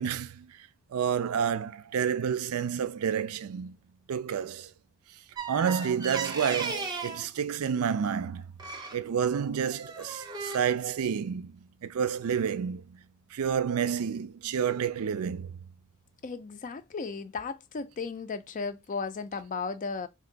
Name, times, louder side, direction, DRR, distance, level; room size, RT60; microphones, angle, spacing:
voice 1, 0.0-3.8 4.1-4.7 5.5-8.5 8.9-13.0 13.3-15.6, right 7 dB, 80° right, 0.4 m, -30 dB
sound 1, 5.4-7.3 8.6-9.0 9.7-10.6, right 4 dB, 20° right, 0.6 m, -35 dB
voice 2, 16.2-20.1, left 4 dB, 35° left, 0.4 m, -35 dB
3.3 x 2.6 x 3.9 m
head